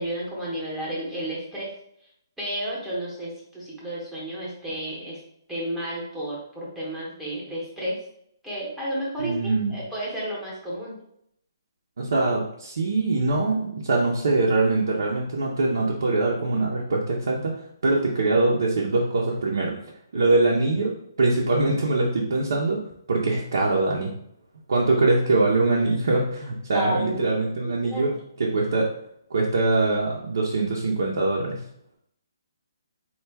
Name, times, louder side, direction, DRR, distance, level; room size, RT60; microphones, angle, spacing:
voice 1, 0.0-1.7 2.4-5.2 5.5-8.0 8.4-10.9 20.1-20.3 26.7-27.2 27.6-28.2, equal, 5° right, -7 dB, 0.9 m, -32 dB
voice 2, 9.2-9.7 12.0-17.5 17.8-19.7 20.1-22.8 23.1-24.1 24.7-28.1 28.4-28.9 29.3-31.6, right 2 dB, 65° right, -3 dB, 0.8 m, -23 dB
4.5 x 2.4 x 3.4 m, 0.72 s
hypercardioid pair, 175°, 2 cm